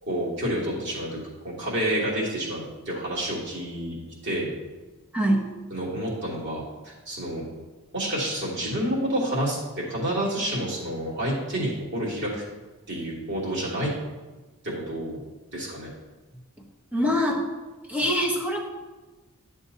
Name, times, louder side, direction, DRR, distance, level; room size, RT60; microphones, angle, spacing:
voice 1, 0.0-4.0 4.2-4.5 5.7-7.4 7.9-12.4 12.9-13.9 14.6-15.2 15.5-15.9, right 1 dB, 55° right, -6 dB, 3.0 m, -29 dB
voice 2, 5.1-5.5 16.9-17.4 17.9-18.6, equal, 5° right, -1 dB, 1.1 m, -23 dB
12.0 x 7.3 x 2.8 m, 1.2 s
head